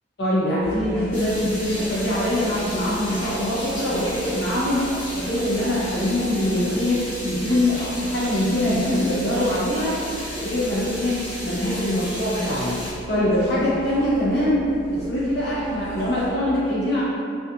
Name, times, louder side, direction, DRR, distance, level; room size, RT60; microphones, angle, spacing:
voice 1, 0.2-10.0 10.4-12.8 13.1-17.0, left 1 dB, 60° left, -8 dB, 0.8 m, -23 dB
sound 1, 0.6-16.3, equal, 55° right, 1.0 m, -38 dB
sound 2, 1.1-12.9, left 1 dB, 90° left, 1.3 m, -34 dB
2.6 x 2.3 x 2.5 m, 2.4 s
head